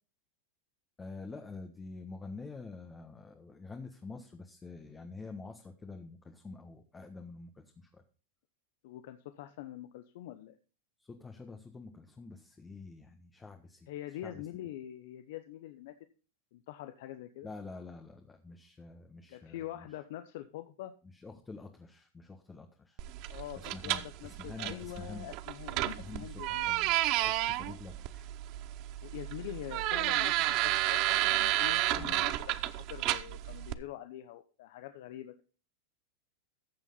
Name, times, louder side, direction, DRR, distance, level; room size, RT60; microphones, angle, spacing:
voice 1, 1.0-7.6 7.9-8.0 11.0-13.9 14.2-14.4 17.4-19.8 21.2-23.0 23.6-25.3 26.0-26.9 27.2-28.4 31.9-32.2, left 3 dB, 15° left, 4 dB, 1.5 m, -47 dB
voice 2, 8.8-10.6 13.9-15.9 16.5-17.5 19.3-20.9 23.3-26.7 29.0-35.4, left 13 dB, 65° left, 9 dB, 0.9 m, -44 dB
sound 1, 23.0-33.7, right 16 dB, 50° right, 0.7 m, -32 dB
14.0 x 7.3 x 4.1 m, 0.35 s
hypercardioid pair, 110°, 0 cm